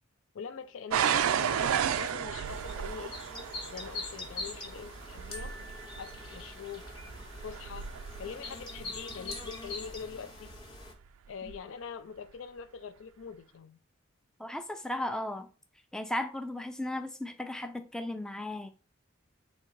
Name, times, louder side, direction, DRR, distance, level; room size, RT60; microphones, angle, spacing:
voice 1, 0.3-3.2 3.7-5.5 6.0-6.8 7.4-7.9 8.2-10.5 11.3-13.8, left 6 dB, 70° left, 0.4 m, -44 dB
sound 1, 0.9-9.7 10.5-10.9 11.5-11.6, right 8 dB, 90° right, 0.4 m, -33 dB
sound 2, 2.4-10.9, left 2 dB, 20° left, 0.7 m, -43 dB
sound 3, 5.3-7.0 9.3-10.4, left 1 dB, 85° left, 1.4 m, -52 dB
voice 2, 14.4-15.5 15.9-18.7, left 1 dB, 5° left, 0.4 m, -35 dB
3.7 x 2.8 x 4.5 m
head